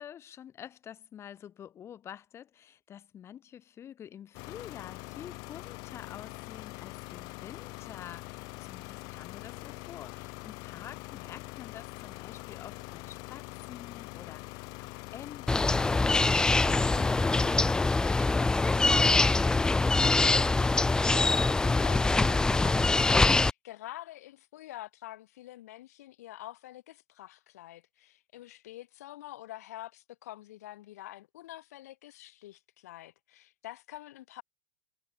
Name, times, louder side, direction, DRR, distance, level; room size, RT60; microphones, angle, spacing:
voice 1, 0.0-19.9, left 9 dB, 30° left, 5.0 m, -48 dB
sound 1, 4.3-17.6, left 27 dB, 50° left, 1.1 m, -43 dB
sound 2, 15.5-23.5, left 3 dB, 10° left, 0.6 m, -24 dB
voice 2, 21.0-34.4, left 15 dB, 65° left, 2.1 m, -46 dB
hypercardioid pair, 100°, 9 cm